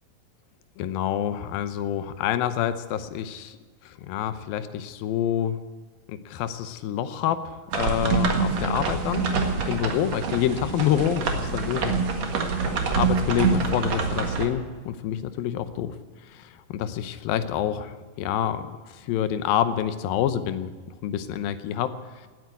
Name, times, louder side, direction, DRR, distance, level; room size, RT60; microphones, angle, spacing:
voice 1, 0.8-3.6 3.9-5.6 6.1-7.4 7.7-9.3 9.7-12.1 12.7-16.0 16.3-20.7 21.0-21.9, left 10 dB, 85° left, 11 dB, 2.6 m, -27 dB
sound 1, 7.7-14.4, right 5 dB, 55° right, 2.6 m, -26 dB
18.0 x 9.4 x 8.1 m, 1.4 s
omnidirectional pair, 4.1 m